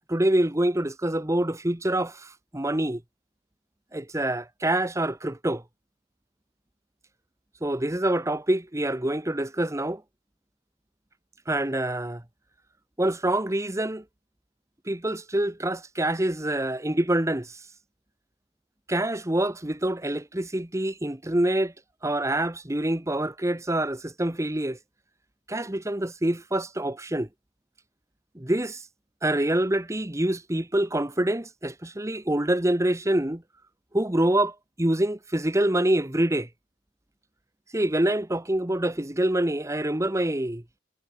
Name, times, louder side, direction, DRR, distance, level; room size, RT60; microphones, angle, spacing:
voice 1, 0.1-3.0 3.9-5.6 7.6-10.0 11.5-12.2 13.0-14.0 14.9-17.6 18.9-21.7 22.0-24.8 25.5-27.3 28.3-28.8 29.2-33.4 33.9-36.5 37.7-40.6, right 1 dB, 15° right, 1.1 m, -26 dB
head